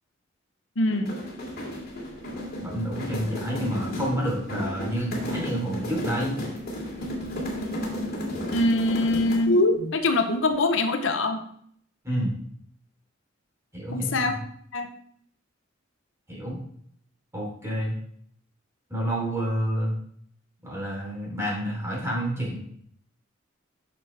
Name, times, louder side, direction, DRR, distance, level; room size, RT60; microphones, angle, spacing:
voice 1, 0.8-1.2 8.5-11.4 13.9-14.4 14.7-14.9, left 2 dB, 70° left, 6 dB, 0.8 m, -23 dB
sound 1, 0.9-9.6, left 1 dB, 50° left, 2.5 m, -33 dB
voice 2, 2.6-6.4 12.0-12.3 13.7-14.3 16.3-16.6 17.3-18.0 18.9-19.9 20.6-22.6, equal, 15° right, -3 dB, 3.3 m, -29 dB
8.9 x 6.2 x 3.3 m, 0.65 s
head